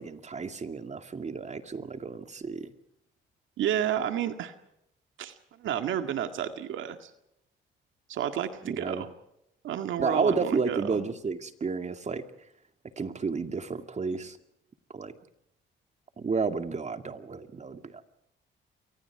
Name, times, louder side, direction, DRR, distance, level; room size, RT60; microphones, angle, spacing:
voice 1, 0.0-2.7 8.6-9.0 10.0-12.2 13.0-14.4 14.9-15.1 16.2-18.0, right 4 dB, 35° right, 7 dB, 2.3 m, -31 dB
voice 2, 3.6-4.5 5.2-7.1 8.1-9.1 9.6-11.0, right 10 dB, 80° right, 7 dB, 1.9 m, -31 dB
29.0 x 24.0 x 4.8 m, 0.80 s
cardioid pair, 90°, 20 cm